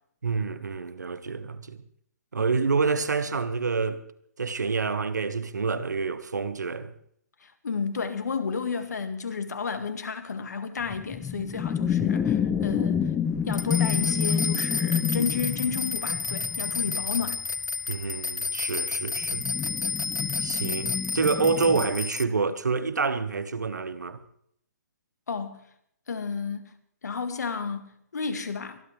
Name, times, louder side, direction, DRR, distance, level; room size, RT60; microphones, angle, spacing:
voice 1, 0.2-1.8 2.3-4.0 4.4-6.9 17.9-19.4 20.4-24.2, right 4 dB, 85° right, 1.4 m, -27 dB
voice 2, 7.4-13.1 13.5-17.4 25.3-25.6 26.1-26.7 27.0-28.8, left 5 dB, 75° left, 2.0 m, -32 dB
sound 1, 10.9-17.3 19.2-21.9, left 8 dB, 15° left, 1.0 m, -28 dB
sound 2, 13.5-22.2, left 4 dB, 90° left, 0.8 m, -31 dB
24.5 x 11.5 x 3.4 m
hypercardioid pair, 140°, 9 cm